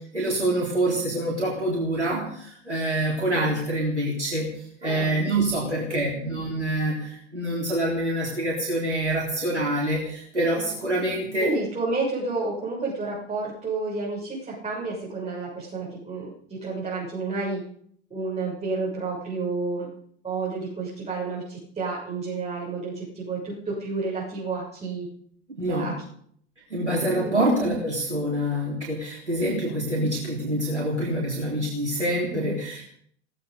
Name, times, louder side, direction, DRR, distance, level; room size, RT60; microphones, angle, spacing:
voice 1, 0.1-11.5 25.5-25.9 26.7-32.9, right 1 dB, 90° right, -3 dB, 3.8 m, -26 dB
voice 2, 4.8-5.2 5.5-6.1 11.1-17.6 18.1-19.9 20.2-25.1 25.7-25.9 27.1-27.4 32.3-32.6, right 3 dB, 20° right, -5 dB, 7.3 m, -30 dB
17.5 x 15.5 x 5.3 m, 0.65 s
figure-of-eight pair, 80°, 34 cm